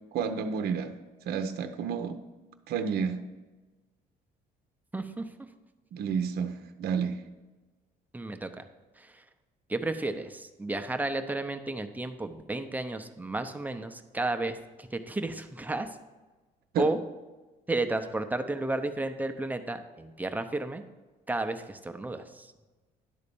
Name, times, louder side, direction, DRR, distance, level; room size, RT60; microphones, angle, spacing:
voice 1, 0.1-0.9 1.3-2.2 2.7-3.2 5.9-7.2 16.7-16.9, right 6 dB, 65° right, 8 dB, 0.7 m, -30 dB
voice 2, 4.9-5.3 8.1-8.7 9.0-9.2 9.7-15.9 16.8-17.0 17.7-20.8 21.3-22.5, right 2 dB, 10° right, 7 dB, 0.7 m, -32 dB
11.0 x 4.1 x 6.9 m, 1.2 s
cardioid pair, 110°, 17 cm